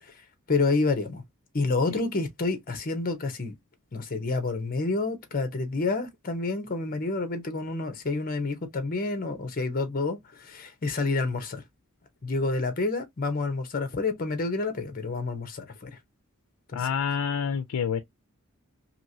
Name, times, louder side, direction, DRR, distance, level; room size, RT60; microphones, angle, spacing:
voice 1, 0.5-1.2 1.5-3.5 3.9-11.6 12.2-16.0 16.7-16.9, left 3 dB, 40° left, 0.7 m, -29 dB
voice 2, 16.7-18.0, left 7 dB, 85° left, 0.4 m, -27 dB
2.8 x 2.8 x 2.6 m
head